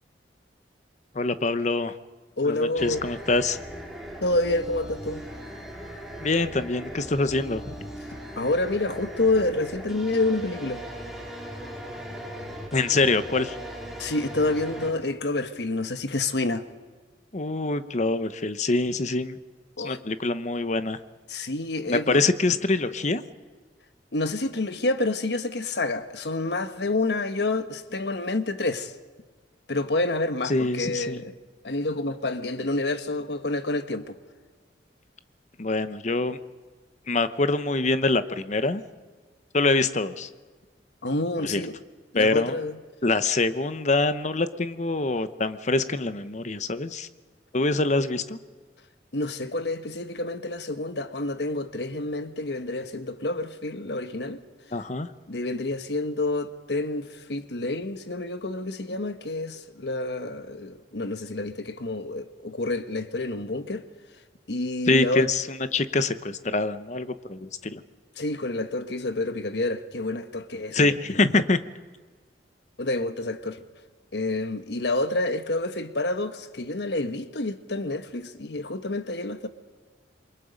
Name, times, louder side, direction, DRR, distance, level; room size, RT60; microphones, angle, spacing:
voice 1, 1.1-1.9 2.4-3.6 6.2-7.9 12.7-13.6 17.3-19.4 19.8-21.0 21.9-23.2 30.4-31.2 35.6-36.4 37.1-38.8 39.5-40.3 41.4-41.6 42.1-42.6 43.0-47.1 47.5-48.4 54.7-55.1 64.9-67.8 70.7-71.6, left 3 dB, 40° left, 0.9 m, -25 dB
voice 2, 2.4-3.0 4.2-5.2 8.4-10.8 14.0-16.7 19.8-20.0 21.3-22.2 24.1-28.9 29.7-31.3 31.6-34.2 41.0-41.8 42.1-42.8 49.1-54.4 55.3-63.8 64.5-65.2 68.2-70.9 72.8-73.6 74.1-79.5, left 2 dB, 70° left, 1.2 m, -28 dB
sound 1, 2.8-14.9, equal, ahead, 3.9 m, -39 dB
28.0 x 23.0 x 5.2 m
head